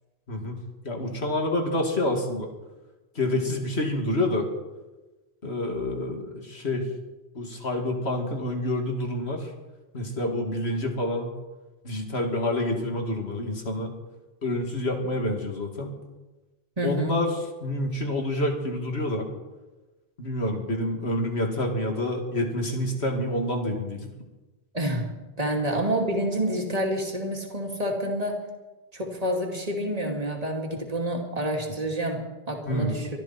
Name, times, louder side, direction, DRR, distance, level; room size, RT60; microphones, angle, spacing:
voice 1, 0.8-2.5 3.1-4.5 5.4-6.9 7.3-9.5 9.9-11.3 11.8-13.9 14.4-16.0 16.8-17.3 17.6-19.3 20.2-24.1 32.6-32.9, left 1 dB, 80° left, 2 dB, 2.8 m, -28 dB
voice 2, 16.8-17.2 24.7-25.0 25.4-28.5 28.9-33.1, right 1 dB, 35° right, 1 dB, 2.6 m, -28 dB
24.0 x 13.0 x 4.4 m, 1.1 s
omnidirectional pair, 1.1 m